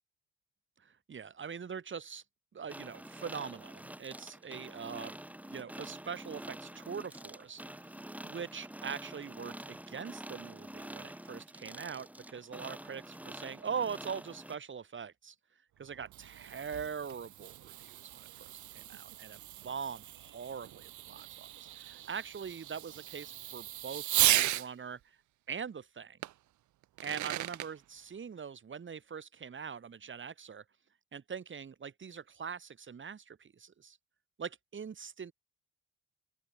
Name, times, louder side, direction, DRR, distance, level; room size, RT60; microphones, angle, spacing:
voice 1, 0.8-2.2 2.5-5.2 5.4-15.3 15.8-25.2 25.5-26.2 27.0-30.6 31.1-34.0 34.4-35.3, right 6 dB, 40° right, 2.8 m, -42 dB
Broken printer stalled machine, 2.7-14.6, right 1 dB, 5° right, 1.3 m, -47 dB
Fireworks, 15.8-24.7 26.2-26.3 26.8-27.7, right 14 dB, 75° right, 1.1 m, -35 dB
open air
cardioid pair, 90°, 30 cm